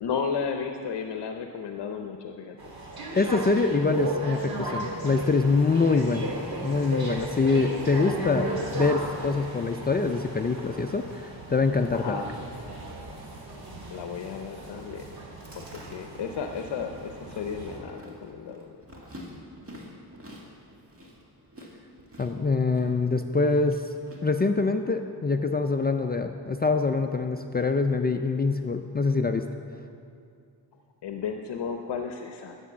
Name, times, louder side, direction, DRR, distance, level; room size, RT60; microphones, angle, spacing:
voice 1, 0.0-2.6 11.9-12.3 13.9-15.1 15.6-18.8 31.0-32.6, left 6 dB, 70° left, 5 dB, 0.7 m, -33 dB
sound 1, 2.6-17.8, right 1 dB, 55° right, 2.4 m, -36 dB
voice 2, 3.1-6.3 6.6-8.5 8.7-12.2 22.2-23.8 24.2-29.5, left 4 dB, 25° left, 5 dB, 0.4 m, -24 dB
Chewing mastication, 15.3-24.2, equal, 30° right, 2.1 m, -48 dB
11.0 x 7.0 x 7.3 m, 2.4 s
cardioid pair, 100°, 43 cm